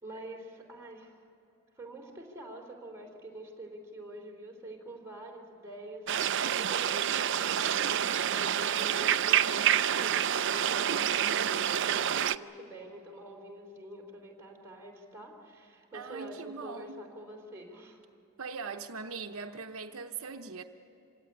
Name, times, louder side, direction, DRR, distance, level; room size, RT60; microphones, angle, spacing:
voice 1, 0.0-1.2 1.8-7.8 8.2-18.0, right 1 dB, 15° right, 3.2 m, -46 dB
sound 1, 6.1-12.4, right 9 dB, 55° right, 0.4 m, -28 dB
voice 2, 15.9-17.0 18.4-20.6, right 5 dB, 80° right, 0.9 m, -40 dB
26.0 x 17.0 x 9.8 m
head